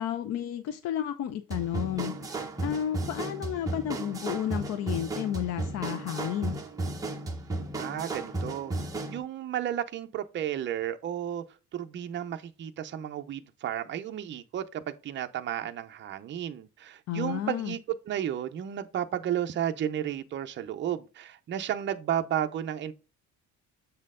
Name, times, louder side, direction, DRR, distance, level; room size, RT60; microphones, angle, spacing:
voice 1, 0.0-2.2 2.6-6.6 17.1-17.7, left 10 dB, 55° left, 0.5 m, -32 dB
sound 1, 1.5-9.2, right 2 dB, 10° right, 1.0 m, -34 dB
voice 2, 7.8-8.7 9.1-11.4 11.7-17.8 18.1-22.9, right 10 dB, 35° right, 0.6 m, -33 dB
7.3 x 4.3 x 3.6 m
cardioid pair, 175°, 32 cm